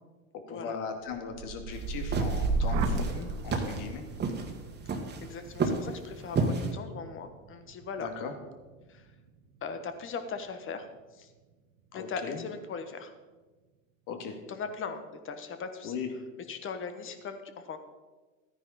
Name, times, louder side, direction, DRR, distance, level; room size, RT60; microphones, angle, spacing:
voice 1, 0.5-4.0 8.0-8.3 11.9-12.4 14.1-14.4 15.8-16.1, left 6 dB, 50° left, 5 dB, 2.2 m, -38 dB
sound 1, 1.1-9.1 9.6-10.1, right 3 dB, 70° right, 1.4 m, -35 dB
sound 2, 1.7-6.7, right 3 dB, 25° right, 1.7 m, -31 dB
voice 2, 4.8-8.1 8.9-9.1 9.6-11.3 11.9-13.1 14.5-16.0 16.5-17.8, left 5 dB, 30° left, 9 dB, 1.3 m, -39 dB
14.0 x 9.8 x 4.2 m, 1.3 s
supercardioid pair, 105°, 39 cm